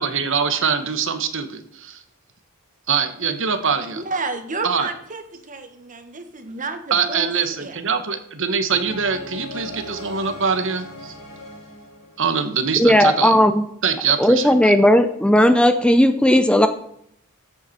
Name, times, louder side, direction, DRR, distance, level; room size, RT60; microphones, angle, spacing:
voice 1, 0.0-2.0 2.9-4.0 4.6-4.9 6.9-11.1 12.2-13.4 13.8-14.7, right 6 dB, 60° right, 10 dB, 1.2 m, -23 dB
voice 2, 3.9-7.3 7.6-7.8, right 3 dB, 35° right, 8 dB, 1.5 m, -31 dB
sound 1, 8.7-12.8, left 1 dB, 80° left, 5.0 m, -38 dB
voice 3, 12.8-13.6 14.2-16.7, equal, 5° left, 9 dB, 0.5 m, -15 dB
14.0 x 8.3 x 4.3 m, 0.72 s
head